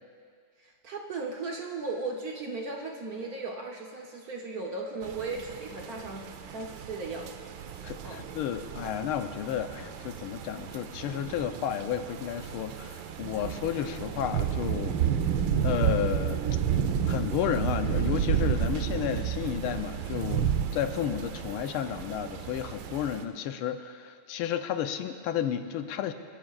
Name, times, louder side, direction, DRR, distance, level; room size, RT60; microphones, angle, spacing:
voice 1, 0.6-7.5 8.0-8.2, right 3 dB, 55° right, 0 dB, 1.1 m, -37 dB
sound 1, 5.0-23.2, right 8 dB, 75° right, 1.4 m, -31 dB
voice 2, 7.8-15.0 15.6-16.4 17.1-26.1, left 10 dB, 85° left, 8 dB, 1.5 m, -32 dB
27.5 x 13.0 x 2.4 m, 2.2 s
omnidirectional pair, 2.4 m